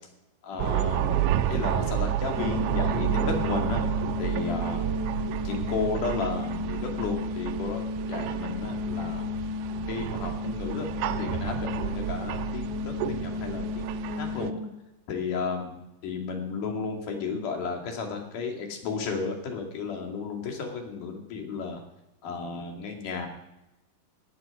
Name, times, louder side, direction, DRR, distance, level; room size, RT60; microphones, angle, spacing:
voice 1, 0.4-3.8 4.2-4.9 5.4-9.3 9.9-10.9 11.2-13.8 14.1-14.5 15.1-21.8 22.2-23.3, left 5 dB, 50° left, 2 dB, 3.3 m, -33 dB
sound 1, 0.6-14.5, right 12 dB, 80° right, 2.7 m, -31 dB
sound 2, 2.4-14.7, left 3 dB, 30° right, 2.3 m, -33 dB
16.0 x 7.5 x 9.9 m, 0.93 s
omnidirectional pair, 5.6 m